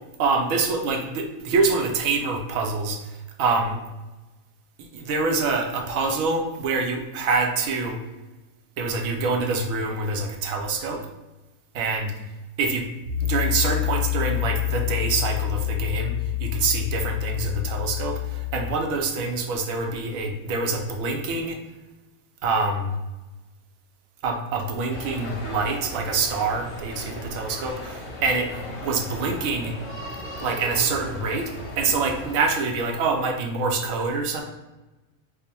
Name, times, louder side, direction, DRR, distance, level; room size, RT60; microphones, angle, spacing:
voice 1, 0.2-3.1 3.4-3.8 4.8-8.0 8.8-11.0 11.7-12.1 12.6-12.8 13.2-16.1 16.4-21.6 22.4-22.9 24.2-27.7 28.2-29.8 30.4-34.4, right 4 dB, 75° right, 3 dB, 1.0 m, -25 dB
Piano, 13.0-18.6, left 17 dB, 50° right, 0.8 m, -27 dB
sound 1, 24.9-32.5, left 1 dB, 50° left, 0.7 m, -37 dB
3.7 x 2.1 x 4.3 m, 1.1 s
omnidirectional pair, 1.5 m